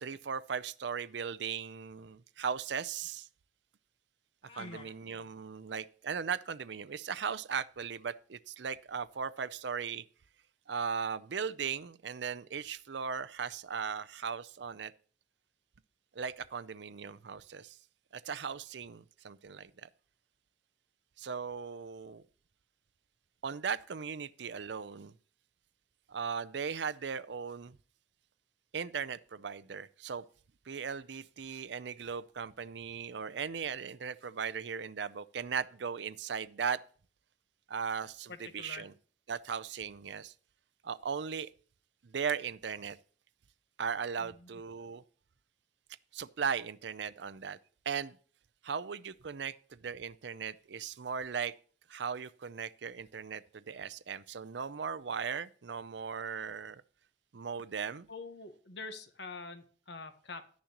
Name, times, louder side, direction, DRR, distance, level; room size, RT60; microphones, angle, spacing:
voice 1, 0.0-3.3 4.6-10.0 10.7-14.9 16.1-17.8 18.1-19.9 21.2-22.2 23.4-25.1 26.1-27.8 28.7-30.2 30.7-36.8 37.7-38.9 39.3-40.3 40.8-41.5 42.0-43.0 43.8-45.0 46.1-47.6 47.9-48.2 48.6-51.5 51.9-56.8 57.3-58.1, right 6 dB, 70° right, 0.5 m, -38 dB
sound 1, 4.4-4.9, left 4 dB, 30° left, 1.4 m, -52 dB
voice 2, 4.6-4.9 38.3-38.9 44.2-44.6 58.1-60.5, left 3 dB, 65° left, 1.2 m, -46 dB
11.5 x 10.5 x 3.0 m
head